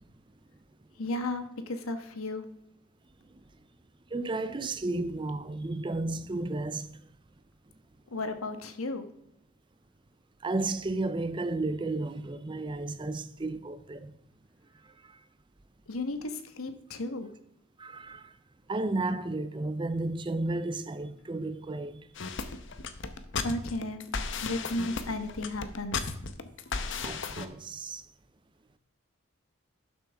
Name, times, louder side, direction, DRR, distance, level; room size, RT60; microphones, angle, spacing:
voice 1, 1.0-2.5 8.1-9.1 15.9-17.3 23.4-24.0 24.4-26.0, left 2 dB, 85° left, 1.2 m, -34 dB
voice 2, 4.1-6.9 10.4-14.1 17.8-18.3 18.7-22.0 27.0-28.0, right 2 dB, 20° right, 0.5 m, -33 dB
sound 1, 22.2-27.5, left 4 dB, 60° left, 0.8 m, -35 dB
12.0 x 7.2 x 3.5 m
head